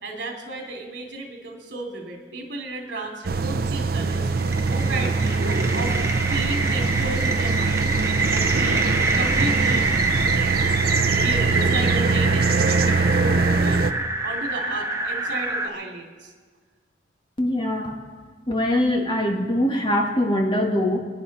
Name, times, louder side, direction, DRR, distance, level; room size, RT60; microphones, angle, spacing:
voice 1, 0.0-4.3 4.7-5.4 5.7-6.0 6.3-7.9 8.3-8.9 9.1-9.9 11.1-13.8 14.2-16.3, right 2 dB, 70° right, 0 dB, 2.7 m, -33 dB
sound 1, 3.2-13.9, right 3 dB, 55° right, 0.6 m, -23 dB
sound 2, 3.8-15.7, right 3 dB, 15° right, 0.9 m, -26 dB
voice 2, 17.4-18.0 18.5-21.0, left 1 dB, 25° left, 1 dB, 1.8 m, -22 dB
27.5 x 10.0 x 4.2 m, 1.5 s
head